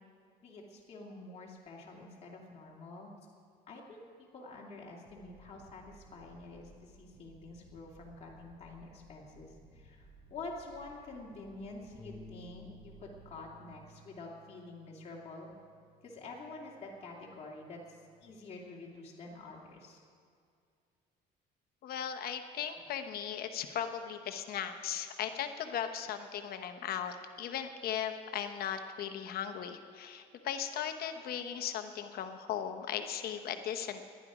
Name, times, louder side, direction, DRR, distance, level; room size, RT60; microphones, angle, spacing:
voice 1, 0.4-3.1 3.7-15.5 16.0-20.0, left 3 dB, 40° left, -3 dB, 2.3 m, -48 dB
sound 1, 5.0-13.4, right 2 dB, 85° right, 4.3 m, -59 dB
Bass guitar, 12.0-16.4 16.8-18.2, left 1 dB, 5° left, 1.3 m, -56 dB
voice 2, 21.8-34.0, left 9 dB, 65° left, 7 dB, 0.9 m, -37 dB
18.0 x 11.0 x 4.9 m, 2.3 s
cardioid pair, 110°, 17 cm